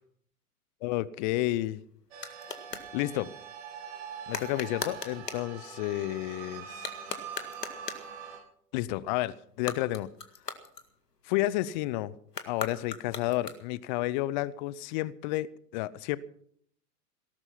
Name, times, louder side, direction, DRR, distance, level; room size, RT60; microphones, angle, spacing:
voice 1, 0.8-1.8 2.9-3.3 4.3-6.8 8.7-10.1 11.3-12.1 12.5-16.2, left 16 dB, 30° left, 0.6 m, -31 dB
sound 1, 1.2-2.9 4.3-5.5 6.7-8.2 9.5-11.3 12.3-13.9, left 4 dB, 85° left, 2.0 m, -40 dB
sound 2, 2.1-8.4, right 7 dB, 50° right, 4.4 m, -43 dB
18.0 x 12.5 x 5.7 m
figure-of-eight pair, 105°, 47 cm